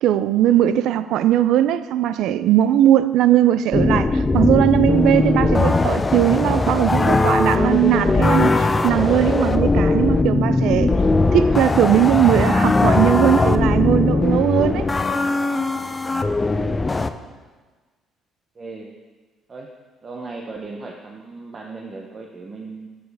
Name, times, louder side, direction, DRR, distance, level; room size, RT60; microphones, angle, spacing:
voice 1, 0.0-10.9 11.3-14.9, right 12 dB, 75° right, 0.3 m, -19 dB
sound 1, 3.7-17.1, left 3 dB, 15° left, 0.3 m, -19 dB
voice 2, 18.5-18.9 19.5-19.7 20.0-22.9, right 3 dB, 25° right, 0.6 m, -37 dB
10.5 x 7.0 x 3.4 m
cardioid pair, 165°, 0 cm